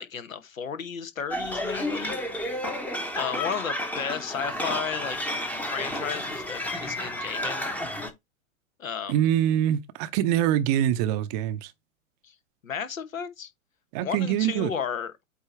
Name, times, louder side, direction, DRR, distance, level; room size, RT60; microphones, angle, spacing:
voice 1, 0.0-2.2 3.2-5.2 5.7-7.7 8.8-9.2 12.2-12.3 12.6-13.5 14.0-15.2, left 7 dB, 75° left, 1.1 m, -33 dB
sound 1, 1.3-8.1, left 1 dB, 5° left, 0.8 m, -31 dB
voice 2, 9.1-11.7 13.9-14.7, right 11 dB, 30° right, 0.6 m, -24 dB
8.4 x 2.8 x 4.4 m
figure-of-eight pair, 110°, 40 cm